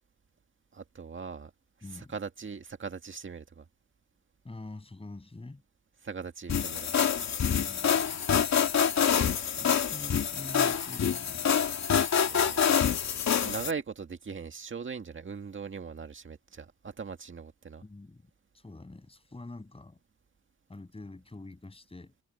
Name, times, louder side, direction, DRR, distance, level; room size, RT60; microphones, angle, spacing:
voice 1, 0.7-1.5 1.9-3.6 6.0-7.0 12.3-12.7 13.4-17.8, right 5 dB, 35° right, 2.0 m, -40 dB
voice 2, 1.8-2.2 4.4-5.6 7.4-8.0 9.6-11.7 17.8-18.3 18.5-20.0 20.7-22.1, left 2 dB, 15° left, 6.9 m, -45 dB
sound 1, 6.5-13.7, left 8 dB, 50° left, 2.4 m, -26 dB
cardioid pair, 115°, 34 cm